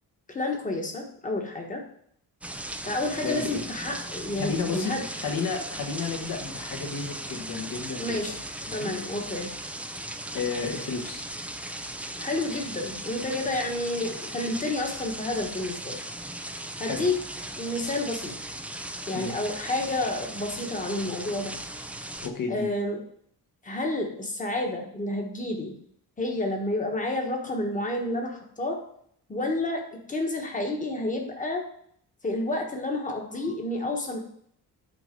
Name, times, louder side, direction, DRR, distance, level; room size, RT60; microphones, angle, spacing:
voice 1, 0.3-1.8 2.8-5.0 8.0-8.4 8.7-9.5 12.2-16.0 16.8-17.1 17.6-18.3 19.1-21.5 22.5-23.0 23.6-25.8 26.2-28.8 29.3-29.8 30.1-31.6 32.2-34.2, left 2 dB, 20° left, 2 dB, 1.3 m, -30 dB
sound 1, 2.4-22.3, right 1 dB, 5° right, 0.4 m, -37 dB
voice 2, 3.2-3.6 4.3-8.4 8.7-8.9 10.3-11.2 16.8-17.1 19.1-19.3 22.2-22.7, left 5 dB, 55° left, 2 dB, 1.4 m, -32 dB
8.9 x 4.0 x 5.2 m, 0.65 s
wide cardioid pair, 180°, 38 cm